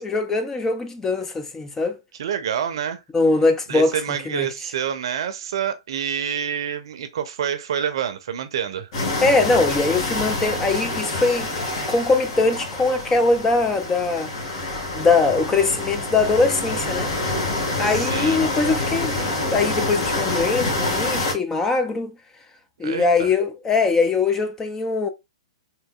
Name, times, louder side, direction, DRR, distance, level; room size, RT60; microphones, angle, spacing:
voice 1, 0.0-2.0 3.1-4.0 4.3-4.5 9.2-11.5 11.9-14.3 14.9-17.1 17.8-22.1 22.8-25.1, left 3 dB, 15° left, 0.5 m, -21 dB
voice 2, 2.2-3.0 3.7-8.9 17.9-18.4 22.8-23.3, right 8 dB, 60° right, 0.6 m, -27 dB
sound 1, 8.9-21.3, left 2 dB, 50° left, 1.6 m, -27 dB
3.7 x 2.9 x 2.3 m
figure-of-eight pair, 115°, 3 cm